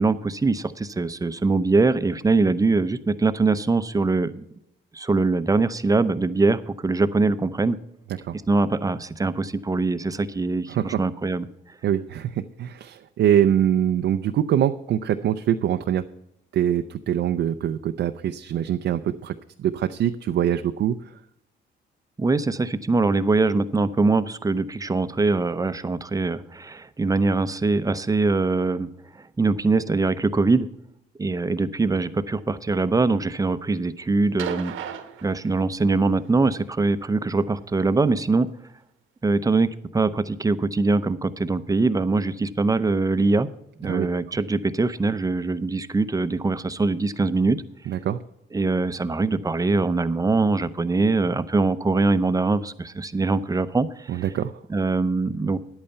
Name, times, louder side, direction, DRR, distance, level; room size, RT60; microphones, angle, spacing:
voice 1, 0.0-4.4 4.9-7.8 8.5-11.5 22.2-28.9 29.2-30.7 31.2-34.7 35.2-38.5 39.2-43.5 43.8-47.6 48.5-54.2 54.7-55.6, right 3 dB, 15° right, 13 dB, 0.6 m, -23 dB
voice 2, 10.7-11.0 11.8-16.0 16.5-21.0 43.8-44.1 47.9-48.2 54.1-54.6, right 10 dB, 65° right, 8 dB, 0.5 m, -23 dB
sound 1, 34.4-36.0 37.3-37.4, right 8 dB, 85° right, 1.2 m, -35 dB
10.5 x 8.7 x 5.7 m, 0.81 s
cardioid pair, 90°, 20 cm